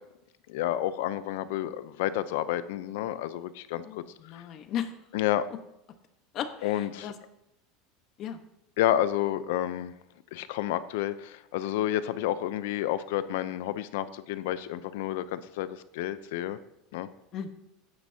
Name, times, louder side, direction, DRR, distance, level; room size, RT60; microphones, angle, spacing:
voice 1, 0.5-4.0 5.1-5.4 6.6-7.1 8.8-9.9 10.3-16.6 16.9-17.1, left 12 dB, 75° left, 14 dB, 0.6 m, -30 dB
voice 2, 3.8-4.9 6.3-7.1 8.2-8.4 17.3-17.5, left 9 dB, 45° left, 8 dB, 1.2 m, -36 dB
14.0 x 9.8 x 2.8 m, 0.87 s
supercardioid pair, 115°, 0 cm